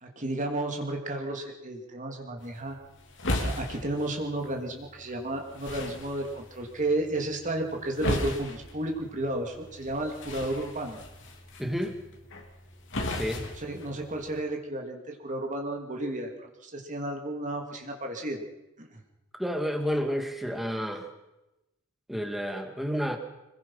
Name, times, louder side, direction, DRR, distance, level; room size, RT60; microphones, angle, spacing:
voice 1, 0.0-2.8 3.4-11.0 13.6-16.3 16.6-18.4 18.8-19.0, right 1 dB, 35° right, 2 dB, 2.9 m, -32 dB
sound 1, 2.4-14.4, left 1 dB, 55° left, 3.3 m, -37 dB
voice 2, 11.6-12.0 13.1-13.5 19.4-21.1 22.1-23.2, equal, ahead, 4 dB, 2.5 m, -30 dB
26.5 x 21.0 x 5.8 m, 0.96 s
head